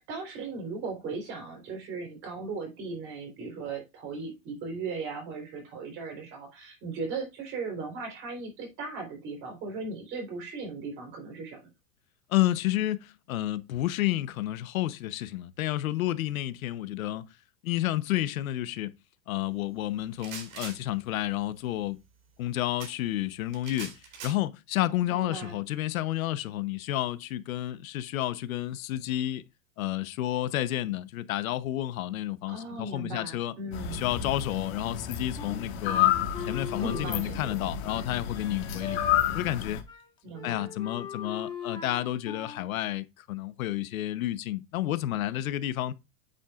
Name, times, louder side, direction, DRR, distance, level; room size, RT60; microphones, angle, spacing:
voice 1, 0.0-11.7 25.1-25.6 32.5-34.0 36.8-37.8 40.2-40.7, right 4 dB, 30° right, 3.9 m, -37 dB
voice 2, 12.3-17.3 17.6-18.9 19.3-22.0 22.4-23.9 24.2-29.4 29.8-33.5 33.9-36.1 36.5-39.0 39.3-39.8 40.4-45.9, left 14 dB, 80° left, 1.0 m, -30 dB
sound 1, 20.0-20.8 22.8-22.9 23.5-24.3, right 6 dB, 75° right, 4.1 m, -41 dB
sound 2, 33.7-39.8, left 10 dB, 45° left, 1.8 m, -30 dB
Wind instrument woodwind instrument, 35.4-39.6 39.9-40.1 40.3-42.7, left 6 dB, 10° left, 1.5 m, -40 dB
8.6 x 8.1 x 2.4 m
supercardioid pair, 170°, 41 cm